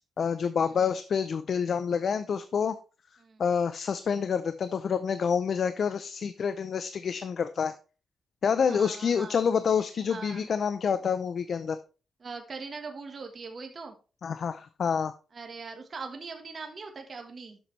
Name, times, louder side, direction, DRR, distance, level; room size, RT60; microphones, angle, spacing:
voice 1, 0.0-2.8 3.4-7.8 8.4-11.8 14.2-15.1, left 6 dB, 55° left, 12 dB, 0.5 m, -28 dB
voice 2, 8.7-9.4 10.1-10.5 12.2-14.0 15.3-17.6, right 4 dB, 40° right, 4 dB, 1.4 m, -41 dB
11.5 x 7.1 x 3.2 m, 0.35 s
cardioid pair, 100°, 0 cm